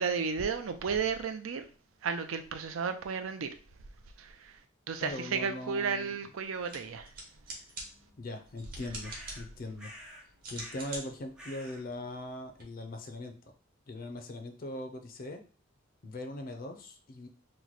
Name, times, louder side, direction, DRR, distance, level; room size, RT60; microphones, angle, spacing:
voice 1, 0.0-1.7 2.0-3.5 4.2-4.6 4.9-7.1, right 5 dB, 85° right, 0.5 m, -33 dB
voice 2, 5.0-6.1 8.2-9.9 10.5-13.4 13.9-15.4 16.0-17.3, left 1 dB, 45° left, 0.4 m, -40 dB
sound 1, 6.5-12.6, right 2 dB, 45° right, 1.0 m, -47 dB
sound 2, 9.0-9.5 9.8-10.3 10.5-11.0 11.4-11.8, equal, 5° right, 0.6 m, -49 dB
3.0 x 2.1 x 3.9 m
head